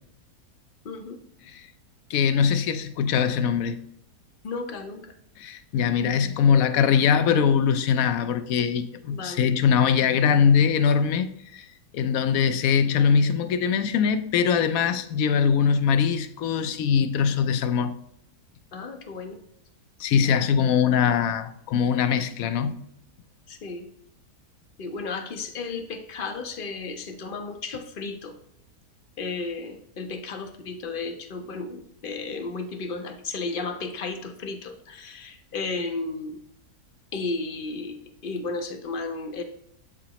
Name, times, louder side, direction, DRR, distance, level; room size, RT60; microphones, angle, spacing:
voice 1, 0.8-1.2 4.4-5.1 9.1-9.5 18.7-19.4 23.5-23.9 24.8-28.3 29.2-36.4 37.1-39.4, left 3 dB, 55° left, 0.6 m, -33 dB
voice 2, 2.1-3.8 5.4-11.7 11.9-17.9 20.0-22.8, left 7 dB, 70° left, 0.9 m, -22 dB
7.8 x 4.9 x 2.9 m
omnidirectional pair, 1.7 m